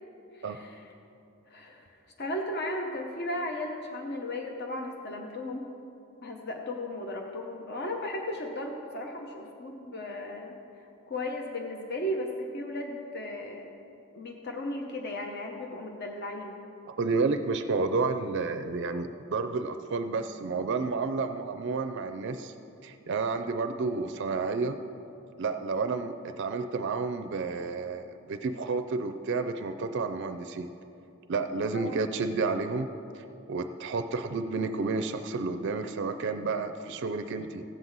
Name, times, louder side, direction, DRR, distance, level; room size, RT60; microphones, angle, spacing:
voice 1, 0.3-0.8 1.5-5.7 6.2-10.5 10.8-13.7 14.1-16.6 31.7-31.9, left 1 dB, 50° left, 2 dB, 0.8 m, -36 dB
voice 2, 17.0-22.5 22.8-24.8 25.4-30.7 31.3-32.9 33.1-37.6, right 4 dB, 55° right, 8 dB, 0.4 m, -31 dB
16.0 x 7.6 x 4.0 m, 2.7 s
head